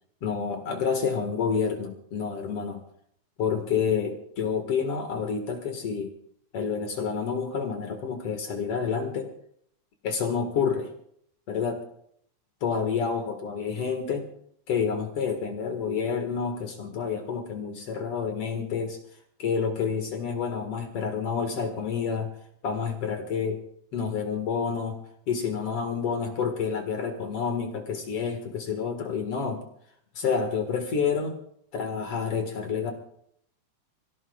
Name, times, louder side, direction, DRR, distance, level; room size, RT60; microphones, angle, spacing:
voice 1, 0.2-2.8 3.4-6.1 6.5-9.3 10.0-10.9 11.5-11.8 12.6-14.3 14.7-19.0 19.4-22.3 22.6-23.6 23.9-25.0 25.3-29.6 30.2-31.4 31.7-32.9, left 6 dB, 55° left, 4 dB, 1.7 m, -29 dB
27.5 x 17.0 x 2.4 m, 0.66 s
omnidirectional pair, 5.0 m